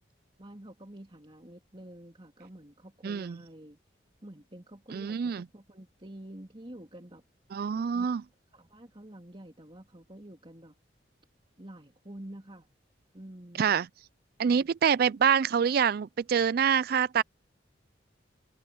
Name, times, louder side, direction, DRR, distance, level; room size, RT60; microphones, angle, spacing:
voice 1, 0.4-3.8 4.2-7.2 7.9-8.1 8.5-10.7 11.6-12.7 13.1-13.7 14.4-14.6, right 1 dB, 30° right, 3.2 m, -48 dB
voice 2, 3.0-3.4 4.9-5.5 7.5-8.2 13.6-13.9 14.4-17.2, right 7 dB, 55° right, 0.4 m, -26 dB
head